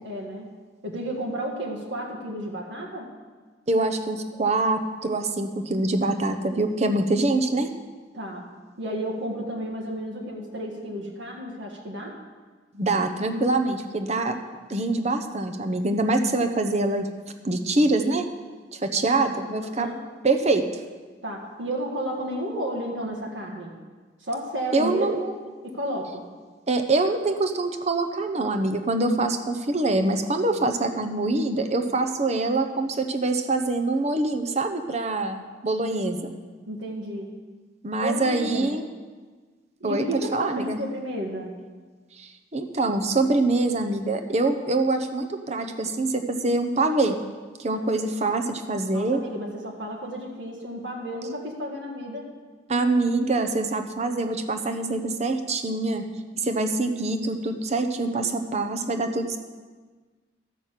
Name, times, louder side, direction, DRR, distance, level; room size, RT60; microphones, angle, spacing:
voice 1, 0.0-0.5 0.8-3.1 8.1-8.4 8.8-12.2 19.6-20.0 21.2-23.7 24.2-26.2 36.7-37.3 38.0-38.7 39.8-41.5 47.7-47.8 48.9-52.3, equal, 75° right, -1 dB, 1.6 m, -32 dB
voice 2, 3.7-7.7 12.7-14.4 14.7-17.1 17.4-18.3 18.7-19.9 20.2-20.7 24.7-25.1 26.7-36.3 37.8-38.8 39.8-40.8 42.2-47.2 47.6-49.2 52.7-56.1 56.4-59.4, right 2 dB, 35° right, 6 dB, 0.8 m, -24 dB
12.5 x 6.1 x 7.4 m, 1.4 s
head